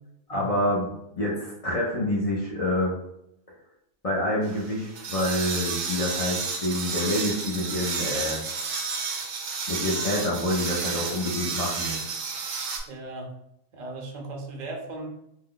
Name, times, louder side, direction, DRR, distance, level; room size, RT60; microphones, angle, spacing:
voice 1, 0.3-2.9 4.0-8.4 9.7-12.0, left 1 dB, 70° left, -5 dB, 0.3 m, -27 dB
sound 1, 4.4-12.8, right 5 dB, 90° right, 1.1 m, -31 dB
voice 2, 12.9-13.3 13.7-15.1, right 2 dB, 65° right, 0 dB, 0.4 m, -37 dB
2.7 x 2.2 x 3.7 m, 0.78 s
omnidirectional pair, 1.6 m